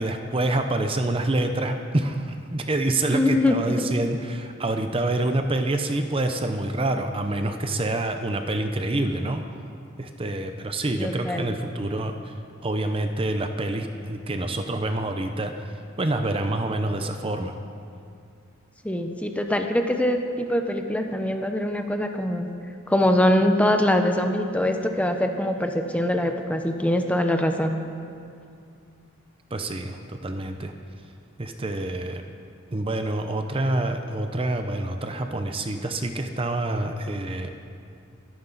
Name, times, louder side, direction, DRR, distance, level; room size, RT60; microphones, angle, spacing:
voice 1, 0.0-9.4 10.0-12.3 12.6-17.5 29.5-30.7 31.4-32.2 32.7-37.5, right 2 dB, 25° right, 6 dB, 0.7 m, -27 dB
voice 2, 3.1-3.9 10.9-11.5 18.8-22.5 22.9-27.8, left 1 dB, 5° left, 5 dB, 0.8 m, -23 dB
21.5 x 11.5 x 4.0 m, 2.4 s
head